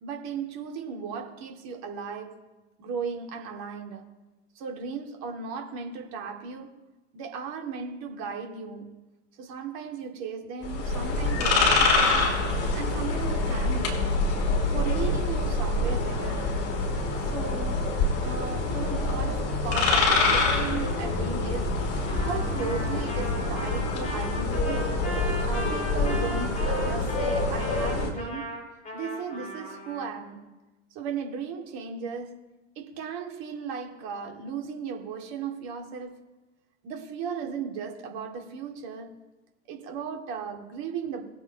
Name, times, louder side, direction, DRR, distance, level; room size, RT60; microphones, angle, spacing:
voice 1, 0.0-2.4 2.8-4.1 4.5-6.7 7.1-9.0 9.4-12.3 12.7-14.2 14.7-16.5 17.2-17.9 18.2-21.8 22.2-24.9 25.4-28.5 28.9-30.5 30.9-32.4 32.8-36.2 36.8-39.2 39.7-41.3, right 6 dB, 45° right, 2.5 m, -36 dB
sound 1, 10.6-28.1, left 2 dB, 40° left, 3.4 m, -26 dB
Trumpet, 22.1-30.1, equal, 20° left, 4.4 m, -38 dB
21.5 x 8.0 x 3.0 m
figure-of-eight pair, 90°, 36 cm